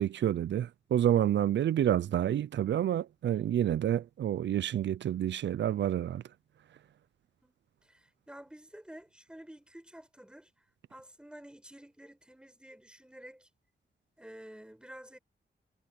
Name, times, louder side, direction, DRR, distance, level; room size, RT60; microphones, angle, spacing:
voice 1, 0.0-6.2, right 11 dB, 85° right, 0.4 m, -28 dB
voice 2, 7.8-13.5 14.2-15.2, right 1 dB, 5° right, 4.7 m, -51 dB
wide cardioid pair, 125°, 18 cm